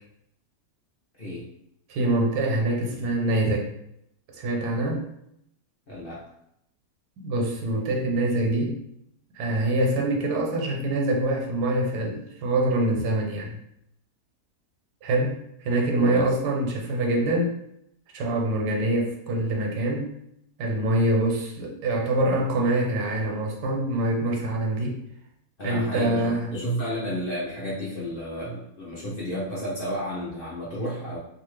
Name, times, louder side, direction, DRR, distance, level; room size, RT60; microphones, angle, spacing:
voice 1, 1.9-3.7 4.3-5.0 7.2-8.8 9.4-13.6 15.0-17.6 18.1-20.1 20.6-25.0 25.6-26.5, right 1 dB, 90° right, 0 dB, 1.3 m, -25 dB
voice 2, 5.9-6.2 16.0-16.2 25.6-31.2, equal, 50° left, -8 dB, 0.7 m, -31 dB
2.8 x 2.4 x 3.1 m, 0.77 s
omnidirectional pair, 1.7 m